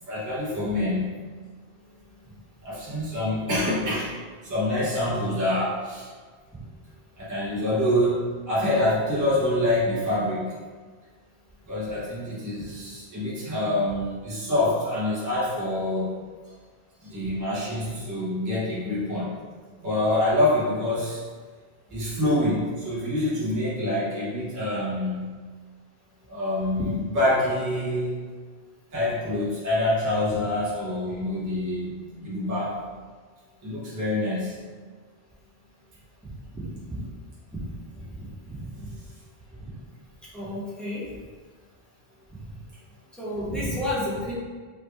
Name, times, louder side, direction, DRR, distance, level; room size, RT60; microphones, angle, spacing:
voice 1, 0.0-1.2 2.6-4.1 4.4-6.1 7.2-10.6 11.7-16.2 17.0-19.4 19.8-21.2 21.9-25.4 26.3-28.1 28.9-32.7 33.6-34.6, left 1 dB, 20° right, -8 dB, 0.7 m, -26 dB
voice 2, 38.1-38.9 40.3-41.0 42.5-42.6 43.2-44.3, left 1 dB, ahead, -10 dB, 1.0 m, -31 dB
3.3 x 2.4 x 3.3 m, 1.5 s
omnidirectional pair, 1.1 m